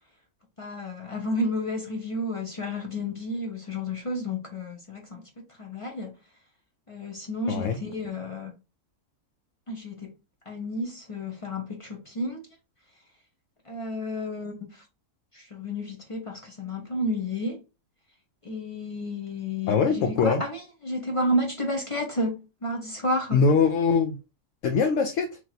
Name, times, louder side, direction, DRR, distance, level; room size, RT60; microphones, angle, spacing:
voice 1, 0.6-5.2 5.6-6.2 6.9-8.5 9.7-10.1 10.5-12.4 13.7-14.8 15.3-17.6 18.4-23.4, left 1 dB, 40° left, 0.4 m, -31 dB
voice 2, 19.7-20.4 23.3-24.2 24.6-25.4, left 5 dB, 65° left, 0.9 m, -22 dB
3.0 x 2.9 x 3.9 m
omnidirectional pair, 1.5 m